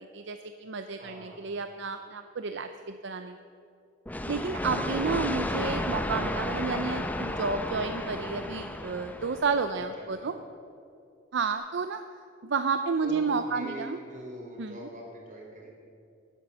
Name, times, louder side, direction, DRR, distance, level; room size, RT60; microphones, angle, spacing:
voice 1, 0.0-3.4 4.3-10.3 11.3-12.0 12.4-14.0 14.6-14.8, right 4 dB, 65° right, 8 dB, 0.6 m, -31 dB
voice 2, 1.0-1.4 9.7-10.3 13.0-15.7, right 1 dB, 45° right, -2 dB, 4.3 m, -43 dB
sound 1, 4.1-9.8, left 1 dB, 10° left, 0.8 m, -33 dB
19.0 x 8.4 x 6.9 m, 2.5 s
head